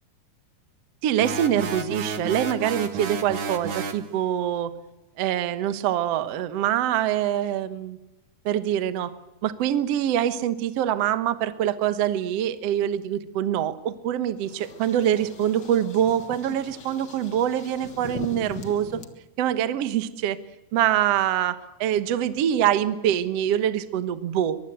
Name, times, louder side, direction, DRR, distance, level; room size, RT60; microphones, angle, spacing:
voice 1, 1.0-4.7 5.2-8.0 8.4-9.1 9.4-18.9 19.4-20.4 20.7-24.6, right 10 dB, 90° right, 12 dB, 1.4 m, -24 dB
sound 1, 1.2-4.1, right 4 dB, 55° right, 1.4 m, -31 dB
sound 2, 14.4-19.1, left 6 dB, 70° left, 1.0 m, -40 dB
23.0 x 23.0 x 8.0 m, 1.0 s
omnidirectional pair, 4.8 m